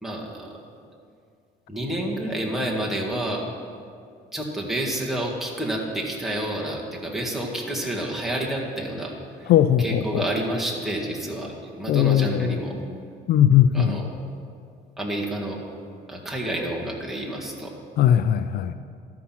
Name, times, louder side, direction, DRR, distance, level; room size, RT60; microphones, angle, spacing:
voice 1, 0.0-0.6 1.7-3.5 4.3-9.5 9.8-12.8 13.7-14.1 15.0-15.6 16.1-17.7, right 1 dB, ahead, -3 dB, 1.8 m, -29 dB
voice 2, 9.5-10.2 11.9-12.5 13.3-14.0 18.0-18.7, left 10 dB, 65° left, 11 dB, 0.4 m, -19 dB
13.0 x 5.8 x 5.9 m, 2.3 s
cardioid pair, 110°, 17 cm